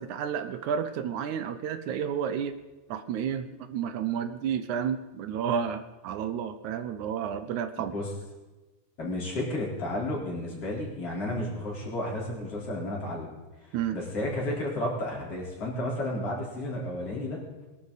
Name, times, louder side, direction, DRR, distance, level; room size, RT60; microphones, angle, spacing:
voice 1, 0.0-2.6 2.9-7.9 13.7-14.0, right 8 dB, 75° right, 10 dB, 2.2 m, -31 dB
voice 2, 7.8-8.1 9.0-13.3 13.9-17.4, left 1 dB, 50° left, -4 dB, 5.1 m, -32 dB
22.0 x 12.5 x 4.1 m, 1.2 s
omnidirectional pair, 3.5 m